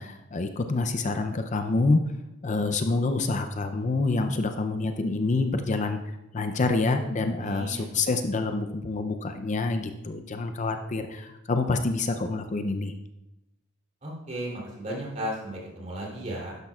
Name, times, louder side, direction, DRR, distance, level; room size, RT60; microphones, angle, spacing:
voice 1, 0.0-2.0 2.4-6.0 6.3-12.9, left 3 dB, 35° left, 7 dB, 0.5 m, -27 dB
voice 2, 7.4-8.0 14.0-16.6, equal, 35° right, -4 dB, 3.1 m, -35 dB
12.0 x 10.5 x 2.4 m, 0.92 s
head